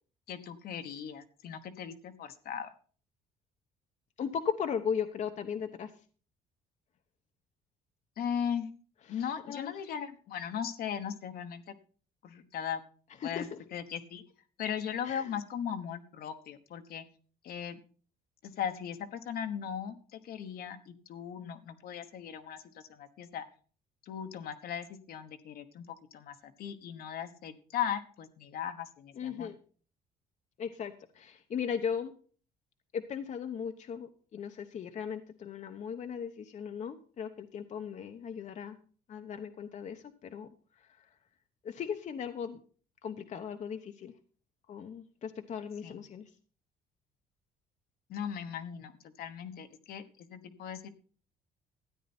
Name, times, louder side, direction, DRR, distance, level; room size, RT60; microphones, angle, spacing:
voice 1, 0.3-2.7 8.2-8.7 9.1-11.7 12.2-12.8 13.2-14.2 14.6-17.0 17.4-17.8 18.4-23.4 24.0-25.9 26.1-29.5 45.8-46.0 48.1-50.9, left 8 dB, 65° left, 8 dB, 1.2 m, -38 dB
voice 2, 4.2-5.9 9.1-9.7 13.2-13.6 15.0-15.3 29.2-29.6 30.6-32.1 32.9-38.8 39.1-40.5 40.8-41.1 41.6-42.6 43.0-44.1 44.7-46.2, left 7 dB, 45° left, 6 dB, 1.0 m, -37 dB
13.0 x 9.3 x 4.3 m, 0.42 s
cardioid pair, 110°, 17 cm